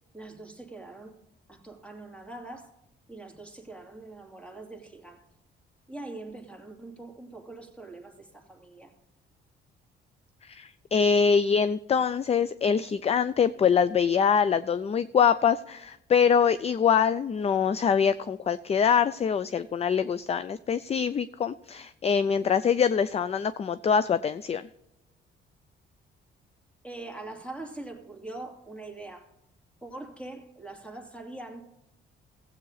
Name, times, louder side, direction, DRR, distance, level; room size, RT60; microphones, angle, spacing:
voice 1, 0.1-1.1 1.5-2.8 3.1-5.2 5.9-8.9 26.8-29.3 29.8-31.6, right 2 dB, 5° left, 2.5 m, -43 dB
voice 2, 10.5-24.7, left 7 dB, 30° left, 0.4 m, -24 dB
15.5 x 8.2 x 4.0 m
cardioid pair, 90°, 20 cm